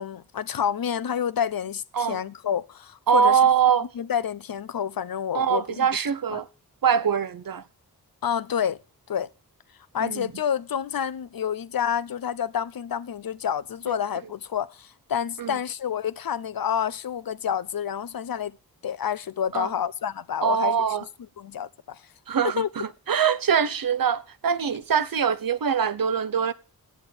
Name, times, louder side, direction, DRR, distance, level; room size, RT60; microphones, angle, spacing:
voice 1, 0.0-3.4 4.0-5.9 6.3-6.4 8.2-8.8 9.1-9.3 9.9-18.6 18.8-20.8 21.4-22.0 22.6-22.7, left 8 dB, 65° left, 0.8 m, -29 dB
voice 2, 3.1-3.9 5.3-6.5 6.8-7.6 10.0-10.3 13.9-14.0 15.4-15.6 19.5-19.7 20.4-21.1 22.3-26.5, right 7 dB, 65° right, 0.9 m, -23 dB
8.1 x 8.0 x 7.8 m
cardioid pair, 45°, 38 cm